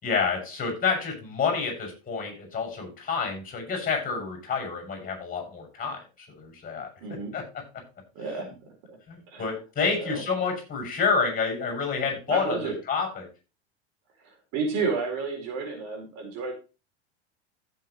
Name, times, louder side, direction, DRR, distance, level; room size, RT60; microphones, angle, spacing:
voice 1, 0.0-6.9 7.3-7.4 9.1-13.3, left 5 dB, 25° left, 3 dB, 7.2 m, -29 dB
voice 2, 7.0-7.3 8.1-8.5 8.9-9.0 9.3-9.5 10.0-10.2 12.3-12.8 14.2-16.5, right 4 dB, 50° right, 2 dB, 4.8 m, -31 dB
15.0 x 7.8 x 3.2 m, 0.31 s
hypercardioid pair, 90°, 34 cm